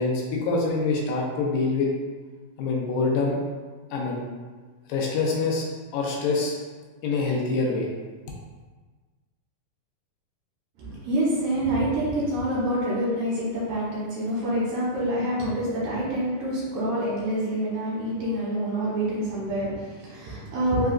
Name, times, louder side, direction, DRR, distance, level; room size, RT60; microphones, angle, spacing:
voice 1, 0.0-1.9 2.6-3.4 3.9-4.2 4.9-5.7 5.9-6.5 7.0-7.9, left 3 dB, 80° left, -2 dB, 2.2 m, -25 dB
voice 2, 10.8-20.9, right 1 dB, 70° right, -8 dB, 2.6 m, -27 dB
5.8 x 2.3 x 2.4 m, 1.4 s
omnidirectional pair, 4.3 m